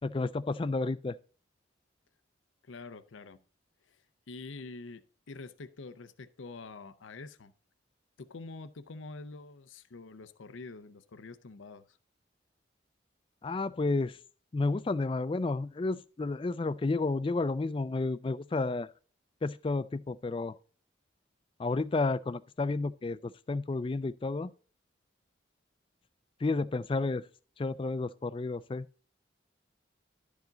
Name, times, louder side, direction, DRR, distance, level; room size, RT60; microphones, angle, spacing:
voice 1, 0.0-1.2 13.4-14.2 14.5-18.9 19.4-20.5 21.6-24.5 26.4-27.3 27.6-28.9, left 3 dB, 25° left, 0.3 m, -31 dB
voice 2, 2.6-3.4 3.9-4.0 4.3-5.0 5.3-7.5 8.2-12.0, left 3 dB, 80° left, 0.6 m, -46 dB
12.0 x 4.9 x 3.9 m
head